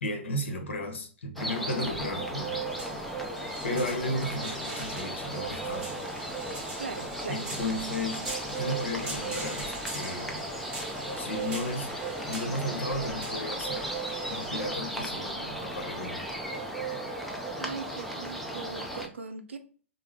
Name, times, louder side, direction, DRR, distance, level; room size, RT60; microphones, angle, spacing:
voice 1, 0.0-2.7 3.6-5.9 7.3-8.3 8.5-10.4 10.7-11.9 12.3-13.9 14.3-16.2, left 1 dB, 65° left, 0.8 m, -34 dB
sound 1, 1.4-19.1, right 1 dB, ahead, 0.4 m, -35 dB
sound 2, 1.9-16.5, right 1 dB, 15° right, 1.2 m, -43 dB
voice 2, 6.8-7.4 17.6-19.6, right 5 dB, 70° right, 0.5 m, -39 dB
3.3 x 2.0 x 3.4 m
figure-of-eight pair, 110°, 7 cm